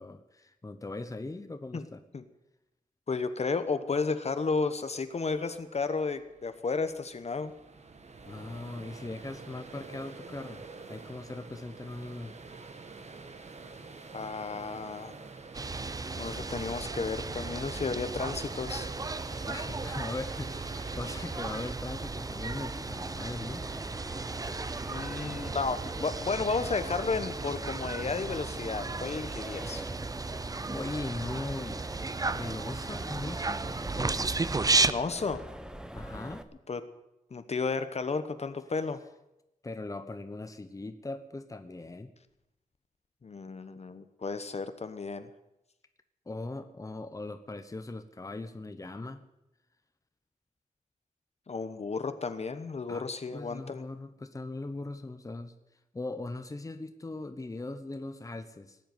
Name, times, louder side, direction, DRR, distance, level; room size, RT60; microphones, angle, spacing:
voice 1, 0.0-2.0 8.2-10.6 10.9-12.3 19.5-24.0 30.7-31.8 32.3-34.3 35.9-36.4 39.6-42.1 46.3-49.2 52.9-53.1 53.3-55.5 55.9-58.9, left 2 dB, 25° left, 9 dB, 1.0 m, -40 dB
voice 2, 3.1-7.5 14.1-15.1 16.2-18.9 24.9-29.8 34.8-35.4 36.7-36.8 37.3-39.0 43.2-45.3 51.5-53.8, left 4 dB, 50° left, 10 dB, 1.0 m, -33 dB
sound 1, 5.1-21.7, right 4 dB, 50° right, 1.4 m, -47 dB
sound 2, 15.5-34.9, right 3 dB, 25° right, 0.5 m, -34 dB
Accelerating revving vroom, 21.8-36.4, right 1 dB, 5° right, 0.9 m, -46 dB
18.5 x 7.8 x 9.4 m, 0.89 s
wide cardioid pair, 140°, 14 cm